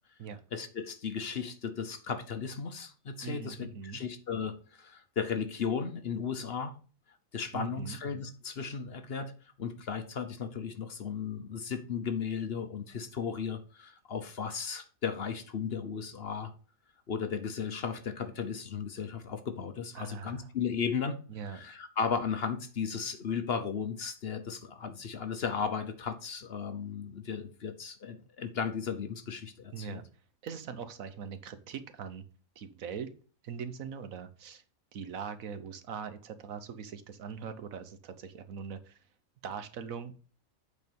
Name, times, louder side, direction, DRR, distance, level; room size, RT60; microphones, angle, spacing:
voice 1, 0.5-6.7 7.3-9.3 9.6-16.5 17.1-21.2 21.5-30.0, left 6 dB, 50° left, 1.0 m, -35 dB
voice 2, 3.2-4.0 7.5-8.0 19.9-20.5 21.3-21.6 29.7-30.1 30.4-32.2 32.6-33.1 33.4-34.6 34.9-39.0 39.4-40.1, right 6 dB, 80° right, 1.4 m, -41 dB
8.3 x 4.5 x 5.3 m
omnidirectional pair, 1.4 m